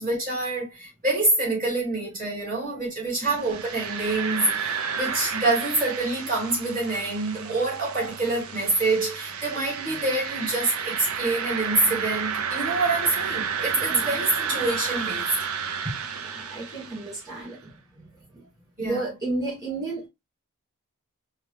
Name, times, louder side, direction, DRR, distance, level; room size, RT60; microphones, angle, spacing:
voice 1, 0.0-15.3 18.8-19.1, right 2 dB, 40° right, 2.5 m, -26 dB
sound 1, 3.3-17.3, right 6 dB, 80° right, 0.6 m, -31 dB
voice 2, 13.9-14.2 14.5-14.6 15.8-17.7 18.3-18.5 18.8-20.1, right 2 dB, 15° right, 2.1 m, -32 dB
4.6 x 2.2 x 3.2 m
head